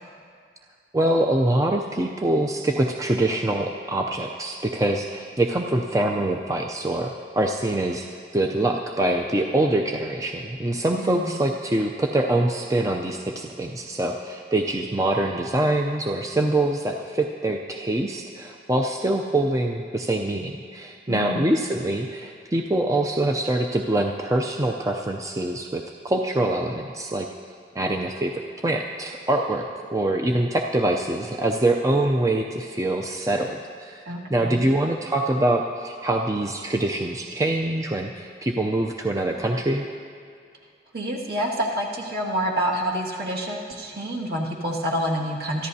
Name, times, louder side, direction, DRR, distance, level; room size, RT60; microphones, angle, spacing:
voice 1, 0.9-8.1 8.3-27.3 27.7-28.3 28.6-34.0 34.3-39.9, right 1 dB, 20° right, 1 dB, 0.5 m, -24 dB
voice 2, 11.0-11.3 21.1-21.5 34.1-34.6 40.9-45.7, equal, 55° right, -2 dB, 1.9 m, -28 dB
24.5 x 14.0 x 2.8 m, 2.3 s
head